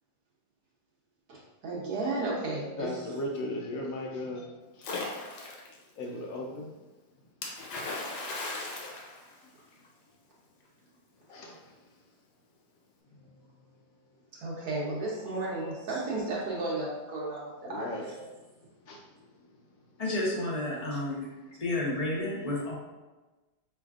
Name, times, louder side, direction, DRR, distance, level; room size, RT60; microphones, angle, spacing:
voice 1, 1.3-2.9 14.4-18.2, right 2 dB, 70° right, -5 dB, 1.3 m, -33 dB
voice 2, 2.8-5.2 5.7-6.8 9.4-9.5 11.2-12.1 13.1-13.5 15.6-15.7 17.6-18.1 18.5-19.6, left 1 dB, 70° left, 0 dB, 0.9 m, -39 dB
Splash splatter, 4.8-5.8 7.4-9.9, left 2 dB, 90° left, 1.3 m, -37 dB
voice 3, 20.0-21.3 21.6-22.7, left 1 dB, 30° left, -5 dB, 0.8 m, -31 dB
4.9 x 3.3 x 2.4 m, 1.2 s
omnidirectional pair, 1.7 m